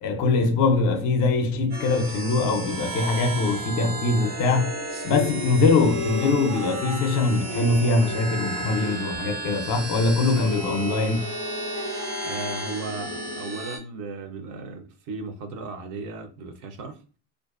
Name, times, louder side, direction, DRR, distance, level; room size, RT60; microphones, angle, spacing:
voice 1, 0.0-4.8 5.0-11.3, left 3 dB, 45° left, 0.5 m, -22 dB
sound 1, 1.7-13.8, right 1 dB, 80° right, 1.4 m, -33 dB
sound 2, 4.9-9.6 9.8-9.9 10.2-12.9, equal, 65° right, 0.9 m, -36 dB
voice 2, 12.2-17.0, right 4 dB, 45° right, 0.5 m, -36 dB
2.5 x 2.1 x 2.3 m
supercardioid pair, 115°, 44 cm